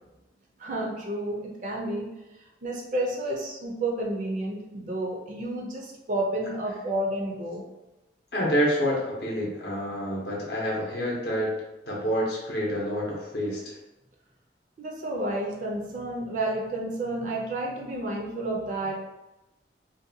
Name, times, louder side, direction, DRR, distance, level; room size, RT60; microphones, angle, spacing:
voice 1, 0.6-2.1 2.6-7.6 14.8-18.9, right 1 dB, 45° right, -1 dB, 0.4 m, -30 dB
voice 2, 8.3-11.5 11.9-13.8, equal, 60° left, -4 dB, 0.6 m, -28 dB
2.6 x 2.2 x 2.6 m, 1.0 s
head